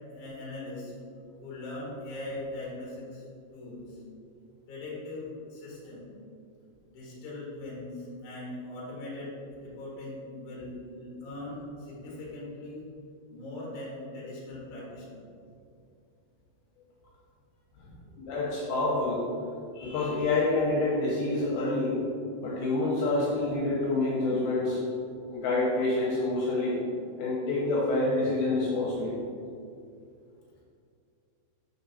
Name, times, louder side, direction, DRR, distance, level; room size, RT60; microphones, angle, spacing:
voice 1, 0.1-0.9 1.4-3.2 3.5-4.0 4.7-6.1 6.9-12.9 13.3-15.2 17.8-17.9, left 2 dB, 55° left, -6 dB, 2.7 m, -40 dB
voice 2, 18.2-19.2 19.7-22.0 22.4-24.8 25.3-26.8 27.2-29.2, left 2 dB, 75° left, -5 dB, 3.1 m, -27 dB
6.6 x 5.4 x 4.1 m, 2.4 s
omnidirectional pair, 5.4 m